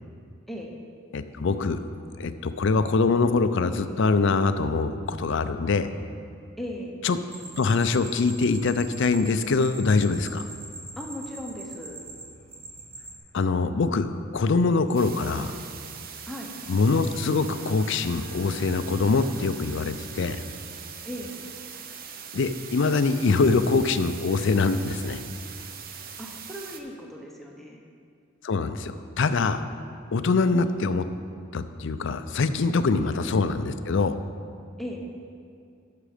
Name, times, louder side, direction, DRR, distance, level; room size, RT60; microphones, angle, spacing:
voice 1, 1.1-1.9 2.2-5.9 7.0-7.2 7.6-10.5 13.3-14.1 14.3-15.6 16.7-20.4 22.3-25.2 28.4-29.6 30.1-31.0 31.5-34.2, left 4 dB, 60° left, 11 dB, 0.5 m, -24 dB
voice 2, 6.6-6.9 11.0-12.0 16.3-16.5 21.1-21.4 26.2-27.8 33.0-33.1 34.8-35.0, equal, ahead, -1 dB, 0.9 m, -37 dB
sound 1, 7.3-13.2, right 3 dB, 70° right, 1.7 m, -42 dB
sound 2, 14.9-26.8, right 7 dB, 45° right, 0.6 m, -41 dB
Bowed string instrument, 17.4-20.6, right 3 dB, 85° right, 1.4 m, -47 dB
11.0 x 6.7 x 5.0 m, 2.4 s
head